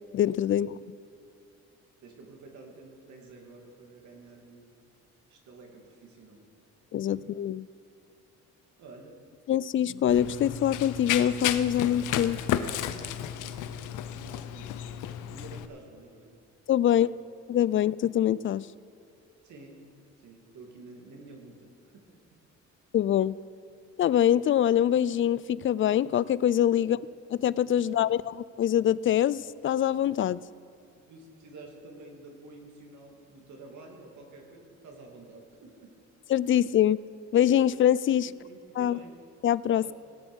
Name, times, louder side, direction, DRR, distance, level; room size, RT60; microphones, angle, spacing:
voice 1, 0.1-0.7 6.9-7.7 9.5-12.4 16.7-17.1 17.5-18.7 22.9-23.4 24.0-27.0 27.4-28.2 28.6-30.4 36.3-37.0 37.3-38.3 38.8-39.0 39.4-39.9, left 10 dB, 45° left, 20 dB, 0.4 m, -24 dB
voice 2, 2.0-4.9 5.3-6.4 7.2-7.3 8.8-9.2 12.7-16.4 17.0-17.1 19.4-19.8 20.2-22.1 26.8-27.0 28.0-28.2 31.1-35.9 38.4-39.2 39.8-39.9, right 3 dB, 70° right, 1 dB, 2.6 m, -50 dB
Run, 10.1-15.7, left 11 dB, 90° left, 0.6 m, -33 dB
17.5 x 7.8 x 6.3 m, 2.6 s
cardioid pair, 90°, 30 cm